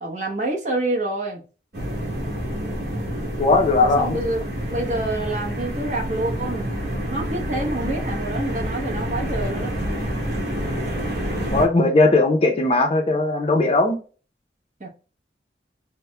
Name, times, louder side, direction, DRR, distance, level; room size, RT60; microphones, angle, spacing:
voice 1, 0.0-1.4 4.0-6.7 7.1-9.7 14.8-14.9, right 2 dB, 40° right, 0.9 m, -27 dB
sound 1, 1.7-11.7, equal, 60° right, 1.4 m, -28 dB
voice 2, 3.4-4.2 11.5-14.0, left 2 dB, 35° left, 0.5 m, -18 dB
5.5 x 2.1 x 2.2 m
head